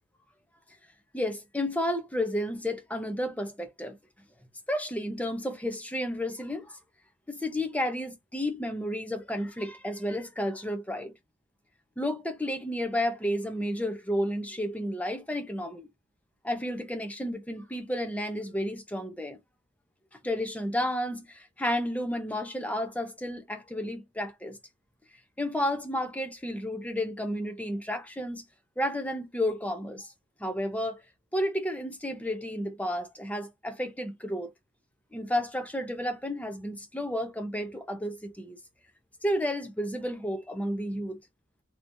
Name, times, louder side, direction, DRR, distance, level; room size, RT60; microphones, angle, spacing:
voice 1, 1.1-4.0 4.7-6.8 7.3-11.1 12.0-15.9 16.4-19.4 20.2-24.6 25.4-28.4 28.8-30.1 30.4-31.0 31.3-34.5 35.1-38.6 39.2-41.2, left 1 dB, 5° left, 0.6 m, -32 dB
3.3 x 2.9 x 2.6 m
head